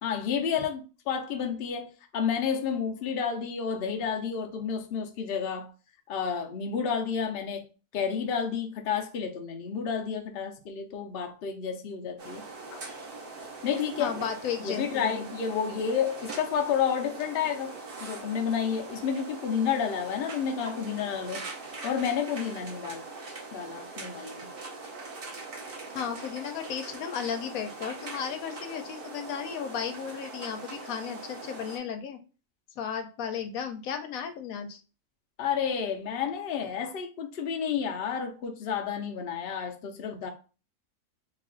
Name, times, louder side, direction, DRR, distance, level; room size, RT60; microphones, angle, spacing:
voice 1, 0.0-5.7 6.1-7.7 7.9-12.4 12.7-12.8 13.6-14.1 14.6-17.7 18.0-21.5 21.8-23.0 23.5-24.5 35.4-40.3, left 7 dB, 55° left, 0.7 m, -30 dB
sound 1, 12.2-31.8, right 3 dB, 50° right, 0.9 m, -42 dB
voice 2, 14.0-15.3 25.9-32.2 32.8-34.8, left 7 dB, 90° left, 1.1 m, -34 dB
3.0 x 2.4 x 3.7 m
omnidirectional pair, 1.4 m